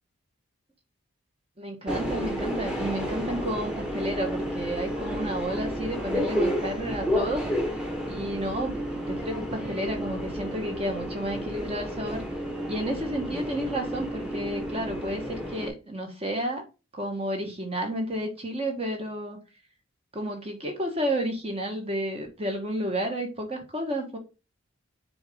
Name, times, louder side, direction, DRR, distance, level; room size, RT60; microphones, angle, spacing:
voice 1, 1.6-12.2 12.7-16.6 16.9-19.4 20.1-24.2, right 1 dB, 30° right, 3 dB, 1.3 m, -31 dB
Subway metro underground, 1.9-15.7, equal, 5° right, 1.1 m, -31 dB
6.9 x 3.9 x 3.5 m, 0.31 s
head